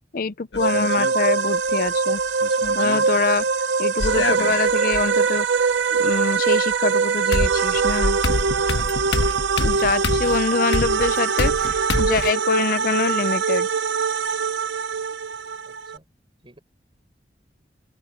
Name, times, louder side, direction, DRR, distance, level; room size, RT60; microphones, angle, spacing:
voice 1, 0.1-2.2 2.8-3.4 3.8-5.5 6.0-8.2 9.6-13.7, left 4 dB, 50° left, 0.6 m, -24 dB
sound 1, 0.5-1.1 2.4-3.0 4.0-5.0 6.7-6.8 7.3-12.3, left 2 dB, 85° left, 1.2 m, -26 dB
sound 2, 0.6-16.0, right 5 dB, 90° right, 0.7 m, -22 dB
voice 2, 15.7-16.1 16.4-16.6, right 1 dB, 30° right, 7.3 m, -52 dB
head